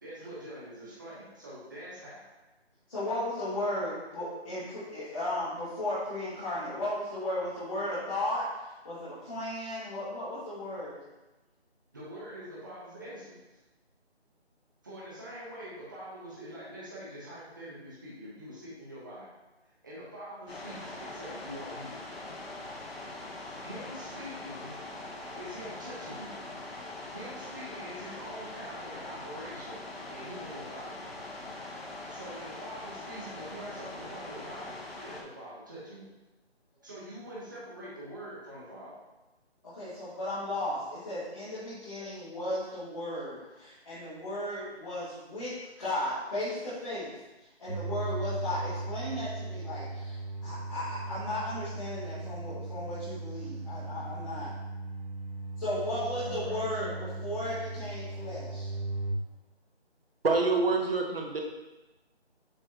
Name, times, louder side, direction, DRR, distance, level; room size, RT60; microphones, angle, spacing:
voice 1, 0.0-2.3 11.9-13.4 14.8-19.3 19.8-22.0 23.6-24.7 25.4-26.4 27.1-29.8 30.1-31.0 32.1-34.8 35.0-36.1 36.8-38.9 56.2-57.2, equal, 20° right, -8 dB, 1.1 m, -44 dB
voice 2, 2.9-11.0 39.7-47.1 47.6-54.5 55.6-58.7, left 1 dB, 30° left, -14 dB, 2.0 m, -35 dB
sound 1, 20.5-35.2, left 2 dB, 65° left, 1.2 m, -42 dB
sound 2, 47.7-59.1, right 2 dB, 35° right, 1.8 m, -38 dB
voice 3, 60.2-61.4, right 3 dB, 60° right, 1 dB, 1.2 m, -26 dB
7.4 x 4.6 x 2.9 m, 1.0 s
figure-of-eight pair, 170°, 33 cm